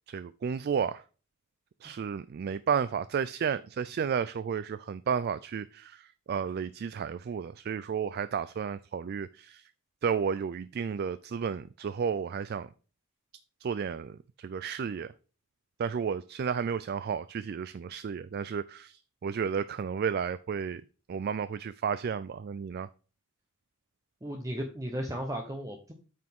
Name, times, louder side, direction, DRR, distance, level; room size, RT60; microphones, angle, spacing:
voice 1, 0.1-1.0 1.8-9.7 10.0-12.7 13.6-15.1 15.8-20.8 21.1-22.9, right 7 dB, 45° right, 0.3 m, -32 dB
voice 2, 24.2-25.9, equal, 15° right, 0.9 m, -35 dB
8.9 x 6.2 x 3.6 m
head